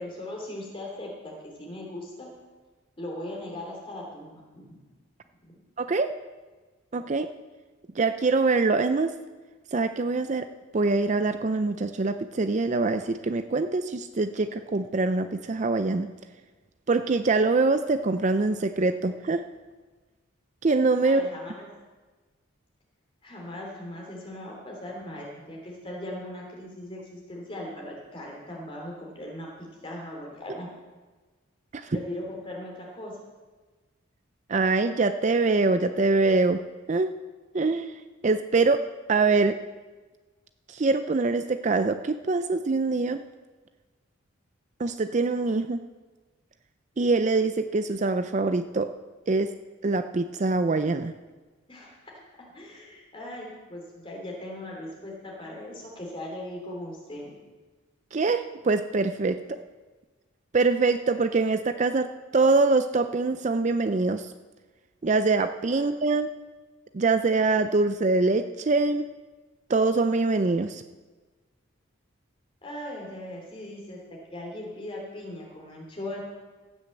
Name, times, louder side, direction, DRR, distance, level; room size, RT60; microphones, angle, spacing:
voice 1, 0.0-1.3 1.6-2.3 3.0-4.6 5.4-5.5 21.0-21.7 23.2-29.5 29.8-30.7 31.9-33.2 51.7-52.0 52.5-57.3 59.3-59.4 65.7-65.8 72.6-74.0 74.3-76.2, left 1 dB, 25° left, -1 dB, 3.2 m, -39 dB
voice 2, 5.8-6.1 6.9-7.3 8.0-9.1 9.7-10.5 10.7-16.1 16.9-19.4 20.6-21.3 31.7-32.0 34.5-36.6 36.9-37.1 37.5-37.9 38.2-38.8 39.1-39.6 40.7-43.2 44.8-45.8 47.0-48.9 49.3-49.5 49.8-51.1 58.1-59.4 60.5-62.1 62.3-64.3 65.0-66.3 66.9-69.1 69.7-70.8, right 3 dB, 35° right, 10 dB, 0.4 m, -24 dB
16.0 x 6.5 x 7.7 m, 1.3 s
head